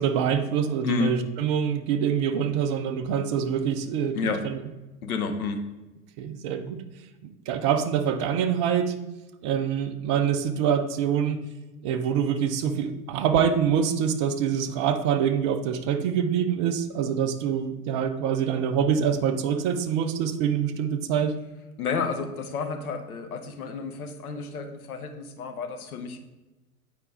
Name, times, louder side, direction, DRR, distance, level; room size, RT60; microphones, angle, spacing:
voice 1, 0.0-4.2 4.4-4.6 6.2-6.8 7.2-8.9 9.4-11.4 11.8-21.3, right 8 dB, 25° right, 7 dB, 0.3 m, -25 dB
voice 2, 0.8-1.2 4.1-4.4 5.0-5.6 21.8-26.2, left 5 dB, 70° left, 6 dB, 1.2 m, -30 dB
8.7 x 4.9 x 3.6 m, 1.1 s
figure-of-eight pair, 95°, 46 cm